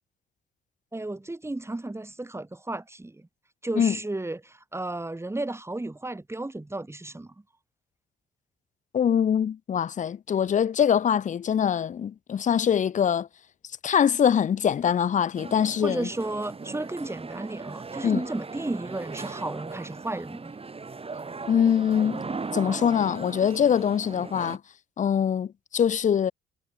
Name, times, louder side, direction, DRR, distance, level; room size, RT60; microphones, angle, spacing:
voice 1, 0.9-3.3 3.6-7.3 15.8-20.5, right 2 dB, 15° right, 3.6 m, -33 dB
voice 2, 8.9-13.3 13.8-16.1 18.0-18.2 21.5-22.2 22.5-24.6 25.0-26.3, left 8 dB, 40° left, 0.6 m, -23 dB
sound 1, 15.4-24.6, right 4 dB, 30° right, 5.4 m, -38 dB
cardioid pair, 80°, 20 cm